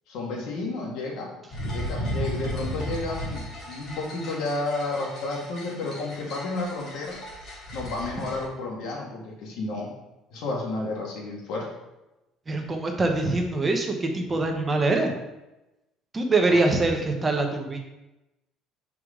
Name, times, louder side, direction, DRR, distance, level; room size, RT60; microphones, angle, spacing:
voice 1, 0.1-1.4 1.7-7.2 7.7-9.9 10.3-11.7 16.5-16.6, left 2 dB, 70° left, -1 dB, 1.7 m, -31 dB
sound 1, 1.5-8.4, equal, 45° left, 2.3 m, -35 dB
voice 2, 12.5-15.1 16.1-17.8, right 2 dB, 20° right, 3 dB, 0.9 m, -24 dB
6.6 x 4.7 x 3.7 m, 0.99 s
cardioid pair, 155°, 0 cm